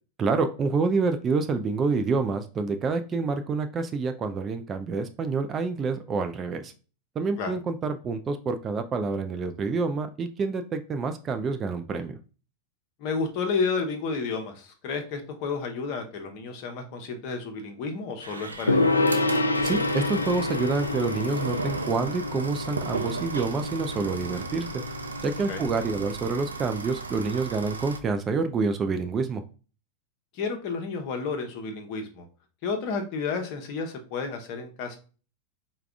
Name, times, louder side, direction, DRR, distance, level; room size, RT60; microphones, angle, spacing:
voice 1, 0.2-6.7 7.2-12.2 19.6-24.7 25.2-29.4, right 4 dB, 25° right, 7 dB, 0.4 m, -27 dB
voice 2, 13.0-19.2 25.5-25.6 30.3-32.3 32.6-35.0, left 4 dB, 45° left, 5 dB, 0.8 m, -31 dB
sound 1, 18.2-28.0, right 4 dB, 75° right, 0.5 m, -36 dB
Gong, 18.7-26.1, left 2 dB, 80° left, 0.3 m, -28 dB
4.7 x 2.3 x 3.4 m, 0.36 s
figure-of-eight pair, 90°, 0 cm